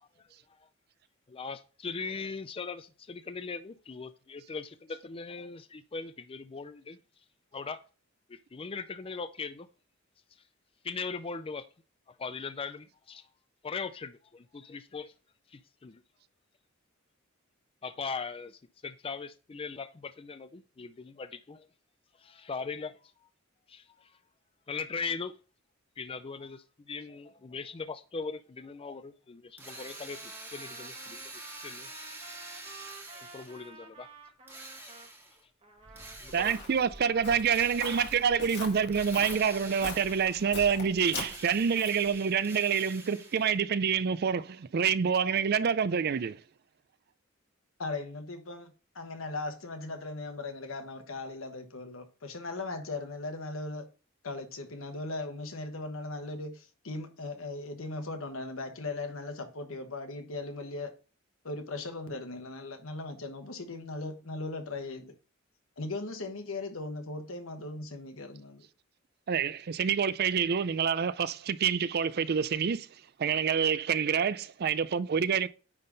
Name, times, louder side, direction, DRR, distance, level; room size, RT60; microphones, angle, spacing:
voice 1, 1.3-7.0 7.5-7.8 8.3-9.7 10.8-11.7 12.1-13.3 13.6-15.1 15.5-16.0 17.8-21.7 22.2-23.1 23.7-24.2 24.7-25.4 26.0-32.1 33.3-34.1 34.8-35.0 36.2-36.6 37.9-38.0, left 4 dB, 25° left, 0.4 m, -40 dB
Drill, 29.6-33.7 34.5-35.4 36.0-36.8 37.4-38.4 38.9-40.6 40.9-43.6, right 2 dB, 10° right, 1.6 m, -47 dB
Trumpet, 29.6-35.1 35.6-37.6, right 4 dB, 30° right, 1.4 m, -53 dB
Walk footsteps, 35.8-42.1, left 4 dB, 55° left, 1.9 m, -42 dB
voice 2, 36.3-46.4 69.3-72.9 73.2-75.5, right 7 dB, 50° right, 0.4 m, -27 dB
voice 3, 47.8-53.9 54.2-60.9 61.4-65.1 65.8-68.7, left 2 dB, 75° left, 1.3 m, -38 dB
9.7 x 3.7 x 3.9 m
head